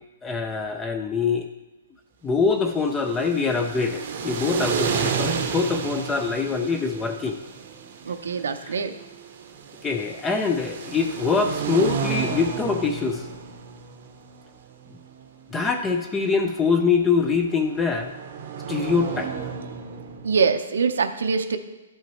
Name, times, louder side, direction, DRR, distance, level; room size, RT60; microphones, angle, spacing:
voice 1, 0.2-1.5 2.2-7.4 8.6-8.8 9.8-13.3 15.5-18.1 18.7-19.3, left 5 dB, 10° left, 5 dB, 0.3 m, -24 dB
sound 1, 2.7-20.6, right 6 dB, 40° right, 0.7 m, -32 dB
voice 2, 8.0-8.9 20.2-21.6, right 5 dB, 90° right, 8 dB, 0.7 m, -23 dB
12.0 x 5.5 x 3.1 m, 1.1 s
hypercardioid pair, 175°, 0 cm